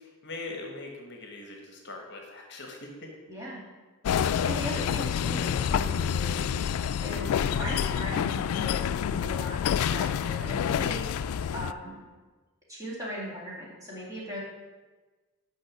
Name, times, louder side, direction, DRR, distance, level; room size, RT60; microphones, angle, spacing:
voice 1, 0.2-3.1 4.2-4.6, left 2 dB, 50° left, 2 dB, 1.2 m, -41 dB
voice 2, 3.3-3.6 4.4-6.5 7.0-8.8 9.1-11.0 11.5-12.0 12.7-14.4, equal, 15° right, -6 dB, 2.7 m, -38 dB
sound 1, 4.0-11.7, left 8 dB, 80° left, 0.3 m, -28 dB
6.4 x 5.6 x 7.2 m, 1.3 s
head